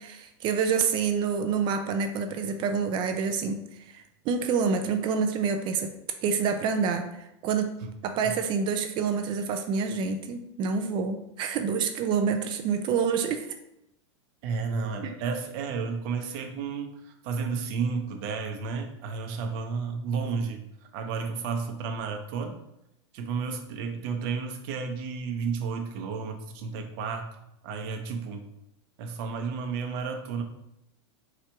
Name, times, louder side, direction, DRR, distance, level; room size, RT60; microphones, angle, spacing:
voice 1, 0.0-5.9 6.2-7.7 8.0-13.5 15.0-15.2, right 6 dB, 35° right, 7 dB, 0.4 m, -27 dB
voice 2, 14.4-20.6 20.9-22.5 23.1-27.3 27.6-28.4 29.0-30.4, right 5 dB, 50° right, 5 dB, 0.7 m, -32 dB
4.4 x 2.4 x 4.5 m, 0.81 s
supercardioid pair, 135°, 15 cm